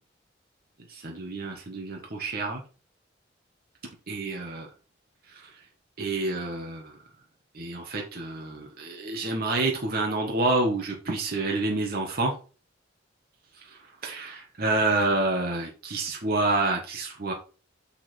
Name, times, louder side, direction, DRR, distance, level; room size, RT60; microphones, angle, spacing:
voice 1, 0.9-2.6 4.1-4.7 5.3-5.5 6.0-7.0 7.5-12.3 13.6-17.3, right 2 dB, 50° right, 0 dB, 1.4 m, -28 dB
6.5 x 5.8 x 4.4 m, 0.35 s
head